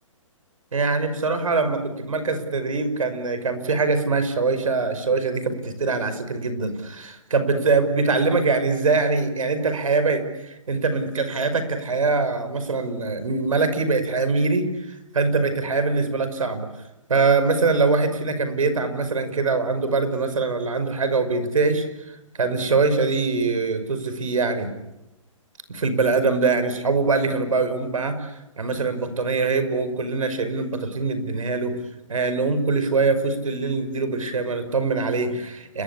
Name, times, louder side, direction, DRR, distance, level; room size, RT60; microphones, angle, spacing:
voice 1, 0.7-16.7 17.1-24.7 25.7-31.8 32.1-35.8, right 4 dB, 85° right, 10 dB, 5.6 m, -23 dB
30.0 x 22.5 x 8.5 m, 0.92 s
hypercardioid pair, 155°, 17 cm